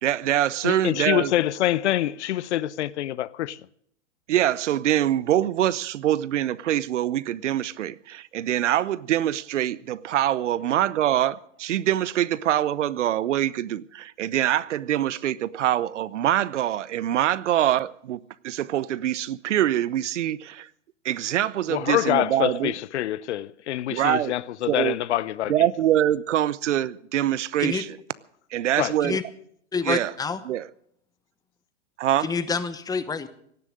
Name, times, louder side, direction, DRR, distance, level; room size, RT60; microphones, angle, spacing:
voice 1, 0.0-1.3 4.3-20.7 21.0-22.7 23.9-24.3 24.7-25.0 25.5-27.9 28.5-29.2 29.8-30.1 30.4-30.7 32.0-32.3, right 12 dB, 75° right, 0.8 m, -24 dB
voice 2, 0.6-3.6 21.7-25.7 28.8-29.0, left 13 dB, 70° left, 0.8 m, -25 dB
voice 3, 29.7-30.4 32.2-33.3, left 5 dB, 10° left, 0.9 m, -27 dB
17.5 x 11.0 x 6.4 m
hypercardioid pair, 125°, 36 cm